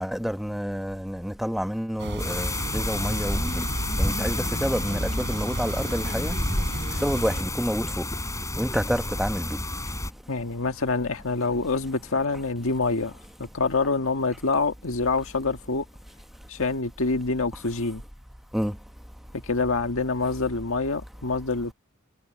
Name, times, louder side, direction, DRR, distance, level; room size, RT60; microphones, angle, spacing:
voice 1, 0.0-3.6 4.0-6.3 7.0-8.1 8.6-9.6 18.5-18.8, equal, ahead, 1.1 m, -29 dB
sound 1, 2.0-7.4, right 1 dB, 55° right, 5.5 m, -33 dB
sound 2, 2.2-10.1, left 1 dB, 15° left, 7.1 m, -30 dB
voice 2, 10.3-15.8 16.5-18.0 19.3-21.7, left 3 dB, 65° left, 1.8 m, -26 dB
head